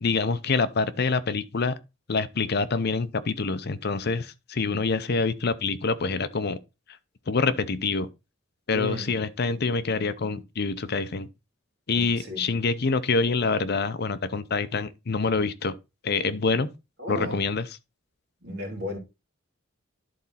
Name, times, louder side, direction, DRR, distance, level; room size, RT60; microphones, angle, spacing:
voice 1, 0.0-1.8 2.1-6.6 7.3-8.1 8.7-11.3 11.9-15.7 16.0-16.7 17.1-17.7, left 4 dB, 50° left, 0.7 m, -26 dB
voice 2, 8.7-9.1 11.9-12.4 17.0-17.4 18.4-19.0, equal, 55° right, 2.8 m, -33 dB
11.0 x 4.1 x 4.2 m
head